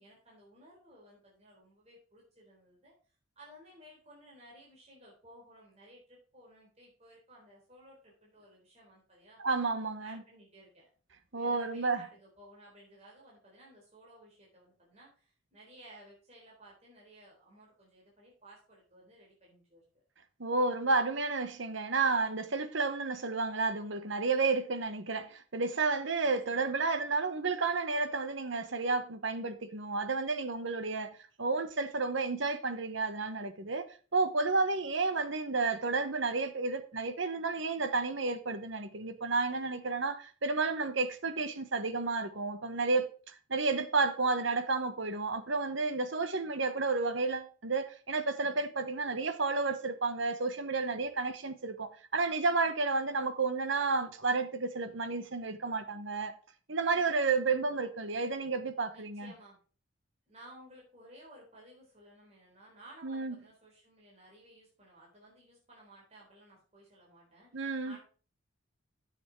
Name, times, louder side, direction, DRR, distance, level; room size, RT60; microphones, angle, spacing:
voice 1, 0.0-2.9 3.4-9.4 10.0-10.9 11.3-19.8 26.2-26.7 58.9-59.6 60.3-68.0, right 1 dB, 35° right, 3.9 m, -57 dB
voice 2, 9.4-10.2 11.3-12.0 20.4-56.3 56.7-59.3 63.0-63.3 67.5-68.0, right 3 dB, 70° right, 1.1 m, -31 dB
9.7 x 7.3 x 4.7 m
head